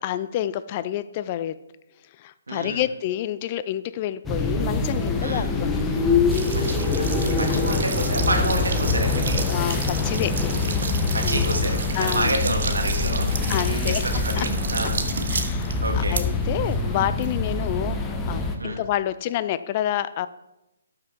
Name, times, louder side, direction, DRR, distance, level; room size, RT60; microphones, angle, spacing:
voice 1, 0.0-1.6 2.2-5.9 7.5-7.8 9.5-10.5 12.0-12.4 13.5-14.1 14.3-14.5 15.3-20.3, left 12 dB, 35° left, 15 dB, 0.4 m, -28 dB
voice 2, 2.5-2.8 5.2-5.5 6.5-9.4 11.1-13.3 13.6-16.2 18.6-18.8, right 1 dB, 85° right, 2 dB, 2.3 m, -29 dB
sound 1, 4.3-18.6, left 3 dB, 10° left, 1.0 m, -24 dB
sound 2, 6.3-18.0, right 5 dB, 60° right, 1.1 m, -33 dB
12.5 x 5.9 x 4.5 m, 0.94 s
figure-of-eight pair, 145°, 0 cm